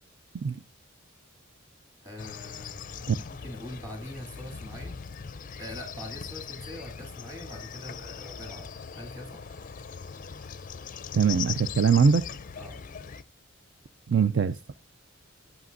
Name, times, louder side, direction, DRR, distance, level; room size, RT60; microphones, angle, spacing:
voice 1, 2.0-3.1 3.4-5.0 5.6-8.7 9.0-9.4 12.6-12.8, left 1 dB, 15° right, 2.1 m, -42 dB
sound 1, 2.2-13.2, left 7 dB, 40° left, 0.4 m, -40 dB
voice 2, 11.1-12.2 14.1-14.7, right 6 dB, 60° right, 0.4 m, -22 dB
17.5 x 5.9 x 2.5 m
head